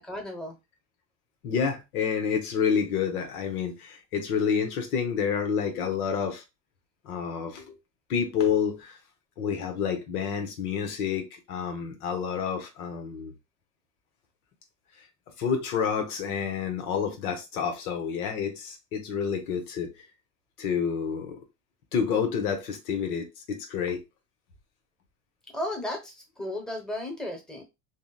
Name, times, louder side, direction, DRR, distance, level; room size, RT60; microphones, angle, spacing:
voice 1, 0.1-0.6 25.5-27.6, left 1 dB, ahead, 0.8 m, -34 dB
voice 2, 1.4-6.4 7.0-7.8 8.1-9.0 9.4-13.3 15.4-19.9 20.6-21.4 21.9-24.0, left 7 dB, 85° left, 0.9 m, -29 dB
2.8 x 2.0 x 2.2 m
hypercardioid pair, 85°, 43 cm